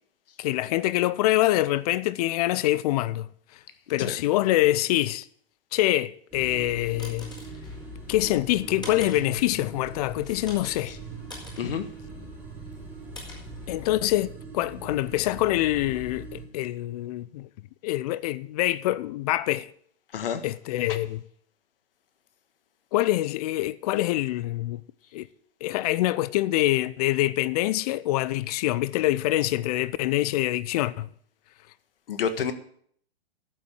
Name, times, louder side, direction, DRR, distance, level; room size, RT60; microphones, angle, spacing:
voice 1, 0.4-3.3 3.9-5.3 5.7-7.3 8.1-10.9 13.7-17.5 17.8-19.7 20.4-21.2 22.9-24.8 25.1-25.3 25.6-31.1, left 16 dB, 40° left, 0.6 m, -25 dB
sound 1, 6.3-16.4, right 3 dB, 5° right, 2.2 m, -42 dB
sound 2, 6.5-14.2, left 2 dB, 15° left, 4.6 m, -47 dB
voice 2, 11.6-12.2 20.1-20.4 32.1-32.5, left 7 dB, 60° left, 1.6 m, -30 dB
12.0 x 7.7 x 8.1 m
figure-of-eight pair, 110°, 31 cm